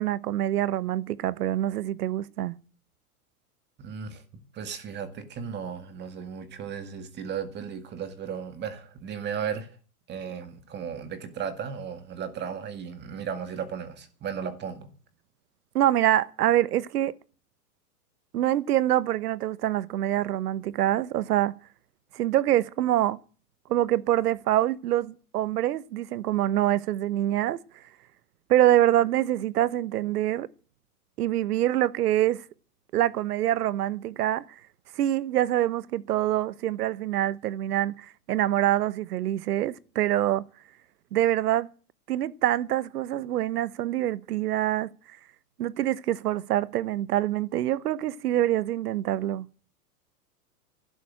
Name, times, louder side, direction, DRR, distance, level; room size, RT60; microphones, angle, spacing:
voice 1, 0.0-2.5 15.7-17.1 18.3-21.5 22.1-23.2 23.7-27.8 28.5-30.5 31.2-32.5 32.9-34.6 34.9-40.4 41.1-41.7 42.1-44.9 45.6-49.5, right 13 dB, 80° right, 1.0 m, -25 dB
voice 2, 3.8-9.7 10.1-14.9, right 7 dB, 25° right, 2.1 m, -35 dB
12.0 x 11.0 x 8.8 m
hypercardioid pair, 145°, 45 cm